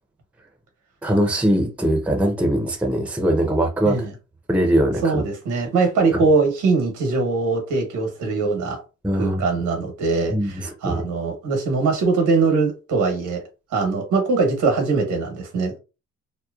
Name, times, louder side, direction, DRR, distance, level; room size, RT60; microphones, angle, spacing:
voice 1, 1.0-4.1 4.5-5.2 9.0-9.4 10.3-11.0, right 1 dB, 5° right, 0.6 m, -21 dB
voice 2, 5.0-8.8 9.1-13.4 13.7-15.8, right 4 dB, 80° right, 1.1 m, -22 dB
2.8 x 2.1 x 2.3 m
cardioid pair, 90°, 30 cm